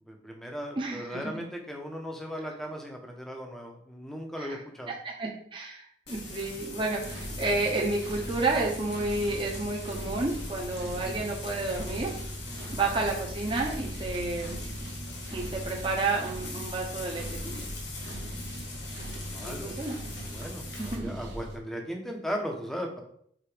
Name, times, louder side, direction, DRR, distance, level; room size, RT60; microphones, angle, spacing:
voice 1, 0.1-4.9 12.5-12.7 19.3-19.9 20.3-23.0, equal, ahead, 1 dB, 0.9 m, -37 dB
voice 2, 0.8-1.4 2.4-2.5 4.4-4.6 4.9-12.1 12.7-14.6 15.3-17.7 19.5-19.9 20.8-21.1, right 3 dB, 25° right, -2 dB, 1.0 m, -31 dB
Frying (food), 6.1-21.0, left 2 dB, 80° left, 1.6 m, -41 dB
sound 1, 7.0-21.6, right 1 dB, 75° right, 1.2 m, -40 dB
4.9 x 4.1 x 5.0 m, 0.64 s
head